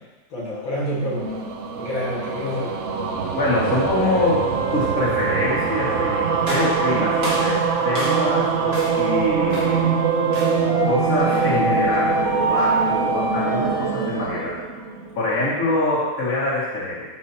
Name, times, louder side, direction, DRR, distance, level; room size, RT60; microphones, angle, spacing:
voice 1, 0.3-1.4 1.8-2.8, equal, 80° left, -6 dB, 2.6 m, -28 dB
sound 1, 0.9-15.4, right 5 dB, 60° right, 0.7 m, -24 dB
voice 2, 3.3-4.4 4.7-10.0 10.8-12.2 12.4-14.6 15.1-17.0, left 2 dB, 45° left, -7 dB, 2.8 m, -24 dB
sound 2, 3.7-14.3, right 3 dB, 5° right, 3.0 m, -27 dB
sound 3, 6.4-8.4 8.7-9.1 9.5-9.9 10.3-10.7 11.3-11.7, right 1 dB, 35° right, 1.7 m, -32 dB
12.5 x 6.2 x 2.9 m, 1.2 s
omnidirectional pair, 2.1 m